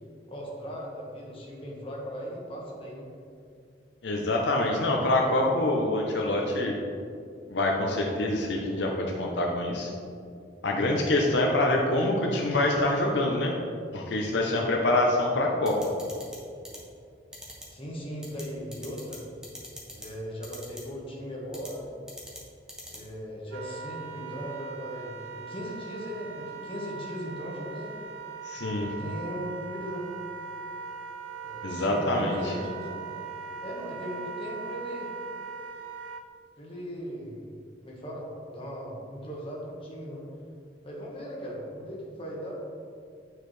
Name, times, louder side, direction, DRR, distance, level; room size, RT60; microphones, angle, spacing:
voice 1, 0.3-3.1 17.7-19.2 19.9-21.9 22.9-27.9 28.7-30.1 31.4-32.9 33.6-35.1 36.6-37.5 37.8-40.2 40.8-42.5, equal, 30° left, -4 dB, 1.3 m, -38 dB
voice 2, 4.0-6.7 7.5-9.9 10.6-13.5 13.9-15.8 28.4-28.9 31.6-32.5, left 1 dB, 70° left, 0 dB, 0.7 m, -25 dB
sound 1, 15.7-16.4 16.6-16.8 17.3-17.6 18.2-18.4 18.7-19.2 19.4-20.1 20.4-20.8 21.5-21.7 22.1-22.4 22.7-23.0, equal, 5° right, 1.0 m, -42 dB
Wind instrument woodwind instrument, 23.5-36.2, right 5 dB, 80° right, 0.5 m, -40 dB
8.6 x 4.7 x 3.2 m, 2.4 s
head